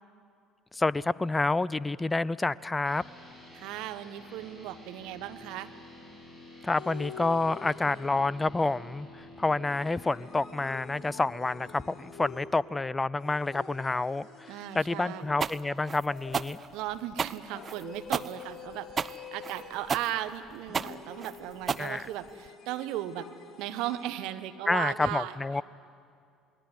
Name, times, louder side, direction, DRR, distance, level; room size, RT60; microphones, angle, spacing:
voice 1, 0.7-3.0 6.6-16.6 21.8-22.1 24.7-25.6, left 3 dB, 20° left, 21 dB, 0.6 m, -29 dB
sound 1, 2.8-12.6, left 2 dB, 10° right, 7.5 m, -50 dB
voice 2, 3.5-5.7 14.5-15.3 16.7-23.3 23.6-25.4, right 13 dB, 65° right, 10 dB, 1.3 m, -36 dB
sound 2, 6.7-8.5 9.7-12.7 13.2-15.5 16.1-16.8 17.5-20.3 20.7-24.2, left 7 dB, 45° left, 2.6 m, -47 dB
sound 3, 15.4-22.5, right 6 dB, 35° right, 0.7 m, -33 dB
28.0 x 20.5 x 9.7 m, 2.4 s
hypercardioid pair, 60°, 0 cm